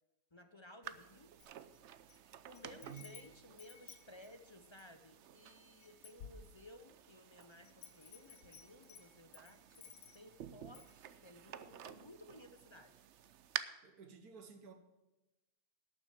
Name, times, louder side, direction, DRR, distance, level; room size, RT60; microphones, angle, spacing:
voice 1, 0.3-1.3 2.5-12.9, left 1 dB, 35° left, 0.4 m, -58 dB
sound 1, 0.8-13.6, right 10 dB, 60° right, 0.8 m, -51 dB
Wind chime, 1.4-2.2 2.6-5.0 5.5-5.6 5.8-6.9 7.4-10.4 10.7-11.0, left 7 dB, 80° left, 1.4 m, -57 dB
voice 2, 13.8-14.7, right 7 dB, 85° right, 1.7 m, -53 dB
12.0 x 6.9 x 7.4 m
omnidirectional pair, 1.6 m